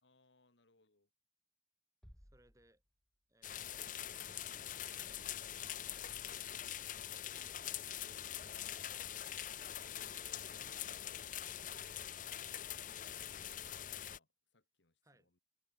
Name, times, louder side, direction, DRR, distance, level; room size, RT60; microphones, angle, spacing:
voice 1, 0.0-1.1 13.4-15.4, left 3 dB, 75° left, 2.2 m, -72 dB
sound 1, 2.0-4.0, equal, 5° left, 3.1 m, -64 dB
voice 2, 2.2-2.8 3.3-4.7 5.6-6.3 6.7-8.1 15.0-15.3, right 1 dB, 15° right, 6.9 m, -73 dB
sound 2, 3.4-14.2, left 11 dB, 45° left, 0.7 m, -44 dB
head